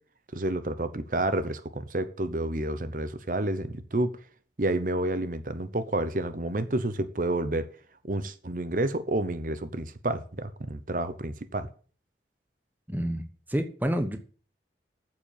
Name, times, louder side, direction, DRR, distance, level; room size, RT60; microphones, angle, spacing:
voice 1, 0.3-4.1 4.6-7.7 8.0-11.7, right 1 dB, 50° right, 12 dB, 0.9 m, -29 dB
voice 2, 12.9-13.2 13.5-14.2, equal, 10° right, 7 dB, 1.0 m, -28 dB
9.0 x 7.7 x 7.3 m, 0.41 s
head